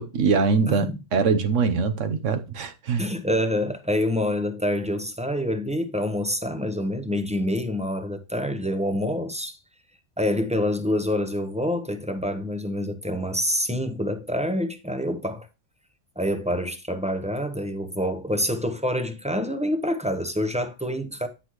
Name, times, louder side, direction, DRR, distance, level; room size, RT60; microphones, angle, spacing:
voice 1, 0.0-3.1, right 5 dB, 90° right, 1.2 m, -23 dB
voice 2, 3.0-9.6 10.2-15.5 16.2-21.3, left 1 dB, 5° right, 0.6 m, -26 dB
9.7 x 5.8 x 3.0 m
omnidirectional pair, 1.2 m